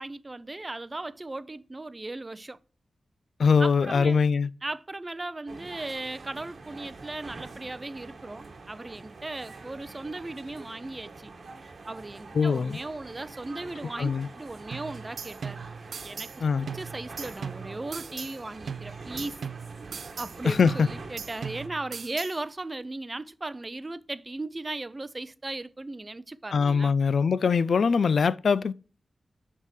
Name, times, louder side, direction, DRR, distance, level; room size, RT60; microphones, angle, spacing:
voice 1, 0.0-2.6 3.6-4.2 4.6-11.3 11.6-15.6 16.0-16.3 16.6-19.4 20.2-26.9, right 2 dB, 25° right, 0.4 m, -37 dB
voice 2, 3.4-4.5 12.3-12.8 14.0-14.3 16.4-16.7 20.4-20.9 26.5-28.7, left 5 dB, 75° left, 0.3 m, -22 dB
sound 1, 5.5-21.7, right 3 dB, 60° right, 1.2 m, -45 dB
sound 2, 14.7-16.4 16.7-18.4 18.7-20.4 20.7-22.4, right 6 dB, 85° right, 0.4 m, -39 dB
9.6 x 3.6 x 4.7 m
wide cardioid pair, 100°, 0 cm